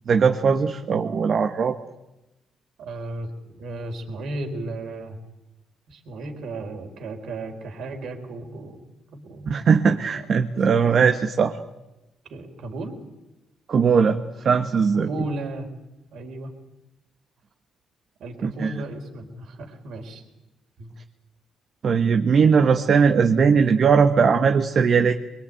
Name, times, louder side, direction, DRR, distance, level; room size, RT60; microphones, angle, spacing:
voice 1, 0.1-1.8 9.5-11.6 13.7-14.2 14.4-15.1 18.4-18.7 21.8-25.1, right 6 dB, 55° right, 5 dB, 1.4 m, -19 dB
voice 2, 2.8-3.3 3.6-5.2 5.9-8.9 9.1-9.5 10.1-10.2 10.7-11.0 12.2-13.0 14.9-15.7 16.1-16.5 18.2-20.2 20.8-20.9, right 2 dB, 70° right, 4 dB, 4.2 m, -34 dB
24.0 x 22.0 x 9.2 m, 0.97 s
cardioid pair, 90°, 0 cm